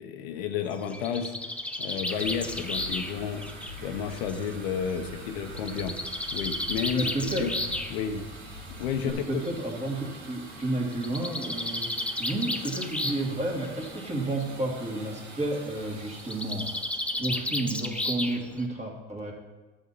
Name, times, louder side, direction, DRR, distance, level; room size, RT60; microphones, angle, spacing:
voice 1, 0.0-1.4 1.8-3.4 3.8-6.0 6.3-7.5 7.9-8.3 8.8-9.4, left 7 dB, 85° left, 6 dB, 1.0 m, -31 dB
Bird, 0.7-4.5 5.6-7.9 9.0-9.1 9.4-9.5 9.8-9.9 10.9-13.3 13.6-14.1 16.2-18.6, left 1 dB, 5° left, 0.6 m, -33 dB
sound 1, 2.1-17.8, right 3 dB, 65° right, 2.4 m, -46 dB
sound 2, 2.2-9.1, left 3 dB, 85° right, 2.5 m, -45 dB
voice 2, 6.9-7.6 9.0-11.8 12.2-16.7 17.2-19.3, right 2 dB, 20° right, 0 dB, 2.2 m, -31 dB
11.0 x 7.4 x 4.1 m, 1.2 s
supercardioid pair, 100°, 31 cm